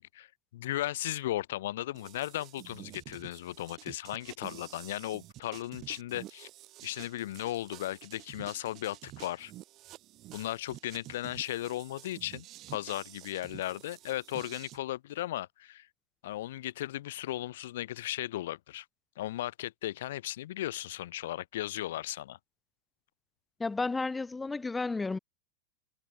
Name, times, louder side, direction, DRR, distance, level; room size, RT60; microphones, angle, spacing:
voice 1, 0.0-6.5 6.8-9.5 10.3-15.9 16.2-18.9 19.2-22.4, left 14 dB, 55° left, 0.8 m, -36 dB
sound 1, 1.9-14.8, right 16 dB, 35° right, 1.4 m, -50 dB
voice 2, 23.6-25.2, left 3 dB, 10° left, 0.9 m, -32 dB
figure-of-eight pair, 90°, 0 cm